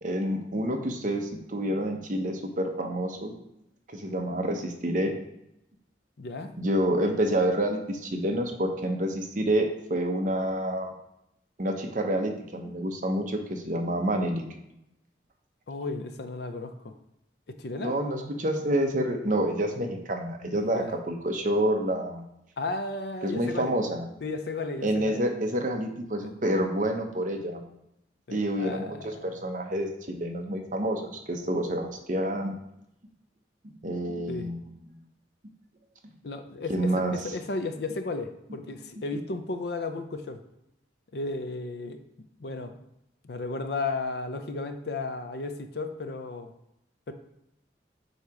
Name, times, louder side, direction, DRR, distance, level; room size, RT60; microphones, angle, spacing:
voice 1, 0.0-3.3 3.9-5.1 6.5-9.6 9.9-10.9 11.6-14.4 17.8-22.2 23.2-24.1 24.8-27.6 28.3-32.6 33.6-34.6 36.7-37.1, right 1 dB, 45° right, 3 dB, 0.8 m, -28 dB
voice 2, 6.2-6.5 15.7-16.9 17.5-18.0 20.5-20.9 22.6-23.7 24.2-25.2 26.2-26.3 28.3-29.2 34.3-34.5 36.2-40.4 41.1-42.0 42.4-42.8 43.2-46.5 47.1-47.2, left 3 dB, 60° left, 8 dB, 0.5 m, -34 dB
7.9 x 2.9 x 4.8 m, 0.83 s
head